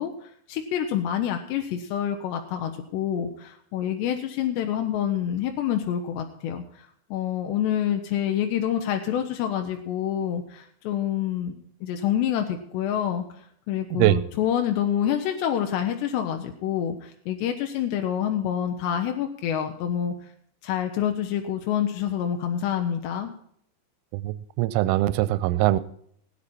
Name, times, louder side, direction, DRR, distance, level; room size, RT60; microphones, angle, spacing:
voice 1, 0.0-11.5 11.8-20.1 20.6-23.3, left 10 dB, 80° left, 5 dB, 2.6 m, -27 dB
voice 2, 24.1-25.8, right 16 dB, 80° right, 16 dB, 2.9 m, -22 dB
17.5 x 9.8 x 4.2 m, 0.67 s
omnidirectional pair, 5.8 m